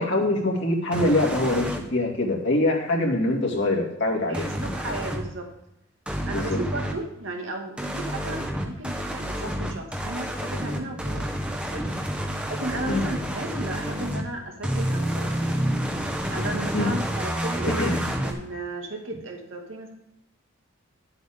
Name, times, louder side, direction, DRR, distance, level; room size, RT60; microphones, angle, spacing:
voice 1, 0.0-4.4 6.3-6.6 12.9-13.0 16.7-16.9 17.7-18.0, left 1 dB, 65° left, -1 dB, 2.3 m, -24 dB
sound 1, 0.9-1.8 4.3-5.2 6.1-6.9 7.8-14.2 14.6-18.3, equal, 5° right, 1.2 m, -29 dB
voice 2, 4.3-5.5 6.3-12.0 12.5-15.6 16.3-18.0 18.2-19.9, right 2 dB, 80° right, 1 dB, 2.1 m, -35 dB
10.5 x 8.0 x 3.6 m, 0.82 s
head